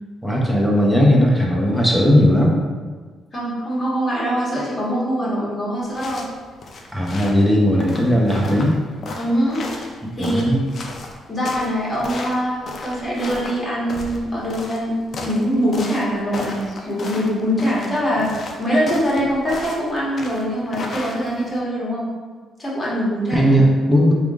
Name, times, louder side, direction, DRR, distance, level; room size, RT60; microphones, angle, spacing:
voice 1, 0.2-2.6 6.9-8.8 10.2-10.6 23.3-24.1, equal, ahead, -2 dB, 0.8 m, -17 dB
voice 2, 3.3-6.3 9.2-9.7 10.1-10.4 11.3-22.1 22.6-23.5, equal, 25° left, -7 dB, 1.4 m, -23 dB
sound 1, 5.8-21.6, left 2 dB, 50° left, 0.5 m, -34 dB
3.4 x 2.4 x 3.6 m, 1.5 s
cardioid pair, 90°, 0 cm